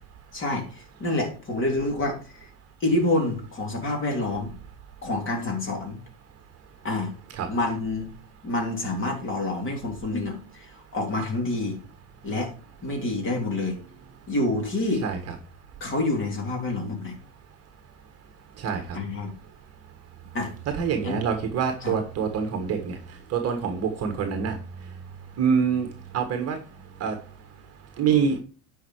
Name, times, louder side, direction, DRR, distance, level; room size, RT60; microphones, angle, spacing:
voice 1, 0.3-2.5 2.8-4.5 5.0-6.0 6.8-7.1 7.5-8.1 8.4-11.8 12.2-12.5 12.8-13.8 14.3-15.1 15.8-17.2 18.9-19.3 20.3-20.5 21.0-21.2 21.8-21.9, left 2 dB, 25° left, 2 dB, 3.5 m, -27 dB
voice 2, 15.0-15.3 18.6-19.0 20.7-23.0 23.3-24.6 25.4-25.9 26.1-26.6 27.0-27.1 28.0-28.4, right 6 dB, 35° right, 6 dB, 1.6 m, -25 dB
10.0 x 5.7 x 4.7 m, 0.37 s
supercardioid pair, 130°, 45 cm